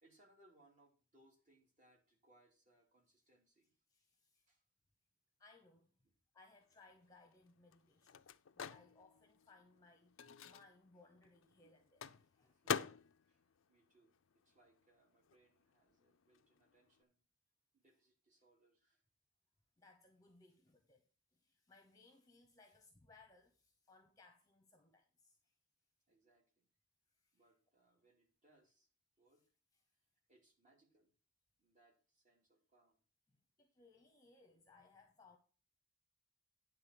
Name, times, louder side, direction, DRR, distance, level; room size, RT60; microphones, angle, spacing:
voice 1, 0.0-3.7 4.5-4.6 12.5-12.8 13.2-17.2 17.7-19.0 26.1-26.7 27.3-28.9 29.2-29.4 30.3-31.1 31.6-33.0, right 1 dB, 35° right, 2.8 m, -72 dB
voice 2, 3.9-4.5 5.4-5.9 6.3-8.2 8.5-12.6 19.8-21.1 21.3-25.5 27.2-27.4 33.3-35.4, left 3 dB, 15° left, 0.9 m, -66 dB
Microwave oven, 6.7-14.9 15.1-17.0, left 7 dB, 75° left, 0.4 m, -47 dB
9.6 x 3.9 x 6.8 m
head